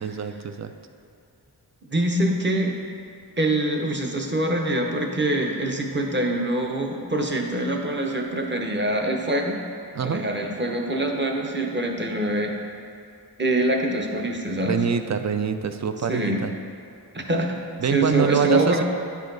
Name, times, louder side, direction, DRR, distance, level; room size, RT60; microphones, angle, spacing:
voice 1, 0.0-0.7 9.9-10.2 14.6-16.5 17.8-18.8, right 6 dB, 45° right, 8 dB, 0.4 m, -25 dB
voice 2, 1.9-2.7 3.4-9.6 10.0-12.5 13.4-14.8 16.1-16.4 17.1-17.6 17.9-18.8, right 1 dB, 30° right, 1 dB, 0.9 m, -24 dB
9.6 x 5.0 x 3.9 m, 2.5 s
wide cardioid pair, 90°, 40 cm